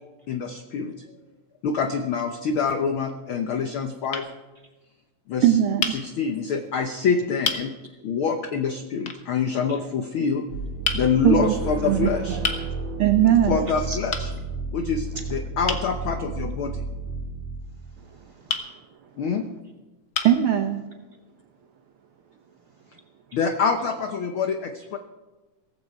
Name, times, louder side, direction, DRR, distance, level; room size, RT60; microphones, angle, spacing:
voice 1, 0.3-0.9 1.6-4.3 5.3-5.5 5.9-7.7 8.0-10.4 10.9-12.4 13.5-14.1 14.7-16.8 19.2-19.4 23.3-25.0, left 5 dB, 75° left, 6 dB, 1.2 m, -25 dB
sound 1, 2.3-3.0 3.7-3.8 4.1-4.3 5.8-6.0 6.8-6.9 7.4-7.7 9.1-9.2 10.8-11.1 12.4-12.7 14.1-14.3 15.7-15.9 18.5-18.7 19.5-19.6 20.1-20.4, left 5 dB, 50° left, 1.2 m, -28 dB
voice 2, 5.4-5.9 11.2-11.5 11.8-12.4 13.0-13.6 20.2-20.8, right 11 dB, 70° right, 6 dB, 1.3 m, -20 dB
sound 2, 10.5-17.9, right 3 dB, 55° right, 3.2 m, -32 dB
voice 3, 13.6-14.0 15.1-15.3 17.7-18.6 22.5-23.0, right 1 dB, 10° right, 0 dB, 1.9 m, -42 dB
17.5 x 15.0 x 4.6 m, 1.2 s
omnidirectional pair, 3.5 m